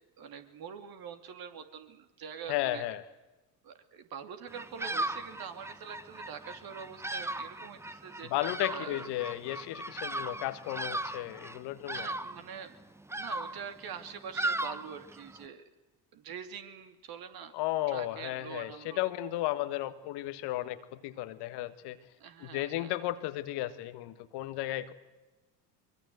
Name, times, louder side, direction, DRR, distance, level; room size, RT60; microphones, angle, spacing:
voice 1, 0.2-2.9 3.6-8.3 8.7-9.1 11.9-12.7 13.1-15.6 16.1-17.5 17.9-19.0 22.2-22.9, right 7 dB, 45° right, 7 dB, 2.8 m, -44 dB
voice 2, 2.5-3.0 8.3-12.1 17.5-22.0 22.4-24.9, left 15 dB, 55° left, 12 dB, 1.5 m, -34 dB
Bird vocalization bird call bird song, 4.5-15.4, right 2 dB, 5° right, 1.0 m, -38 dB
23.5 x 23.0 x 7.9 m, 1.1 s
figure-of-eight pair, 65°, 49 cm